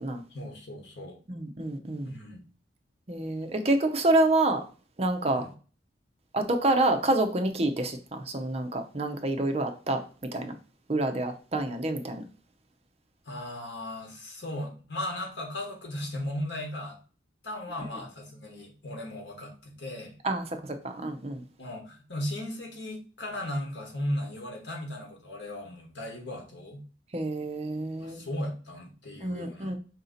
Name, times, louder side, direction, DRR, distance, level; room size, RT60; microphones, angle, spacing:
voice 1, 0.3-1.2 2.0-2.4 5.3-5.5 13.2-17.0 17.4-20.1 21.6-26.8 28.0-29.7, left 1 dB, 75° left, 1 dB, 1.3 m, -36 dB
voice 2, 1.3-2.1 3.1-4.6 5.0-5.4 6.3-8.0 8.3-10.0 10.3-10.5 10.9-12.2 20.2-20.4 21.0-21.4 27.1-28.3 29.2-29.8, right 2 dB, 35° right, 6 dB, 0.5 m, -27 dB
4.9 x 2.7 x 3.9 m, 0.37 s
head